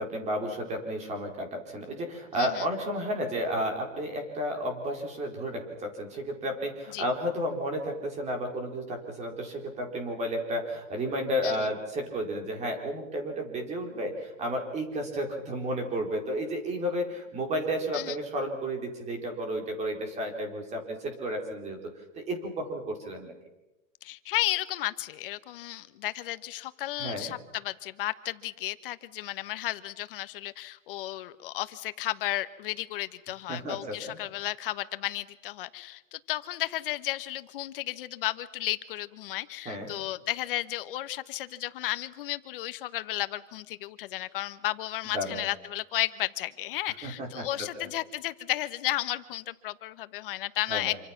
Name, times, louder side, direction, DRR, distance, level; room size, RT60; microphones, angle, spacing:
voice 1, 0.0-21.8 22.1-23.3 27.0-27.3 33.5-34.2 39.6-39.9 45.1-45.5 47.0-47.5 47.8-47.9 50.7-50.9, equal, 15° right, 3 dB, 4.3 m, -32 dB
voice 2, 24.0-51.0, left 15 dB, 45° left, 13 dB, 1.3 m, -33 dB
27.0 x 26.0 x 6.0 m, 0.98 s
hypercardioid pair, 160°, 38 cm